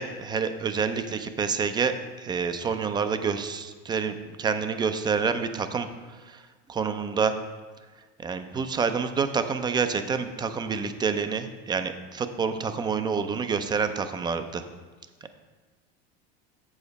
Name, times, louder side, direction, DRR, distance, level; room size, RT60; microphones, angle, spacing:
voice 1, 0.0-5.9 6.2-6.4 6.7-7.3 8.2-14.6, right 5 dB, 15° right, 9 dB, 0.4 m, -28 dB
7.7 x 7.2 x 4.1 m, 1.4 s
supercardioid pair, 130°, 32 cm